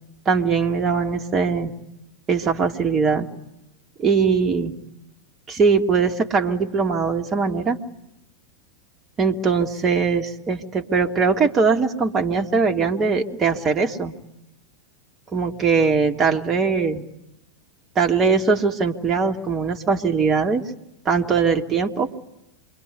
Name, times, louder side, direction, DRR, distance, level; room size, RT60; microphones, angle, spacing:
voice 1, 0.3-1.7 2.3-3.3 4.0-4.7 5.5-7.8 9.2-14.1 15.3-17.0 18.0-20.6 21.1-22.2, right 5 dB, 25° right, 3 dB, 2.0 m, -21 dB
27.5 x 23.0 x 9.4 m, 0.86 s
figure-of-eight pair, 90°, 0 cm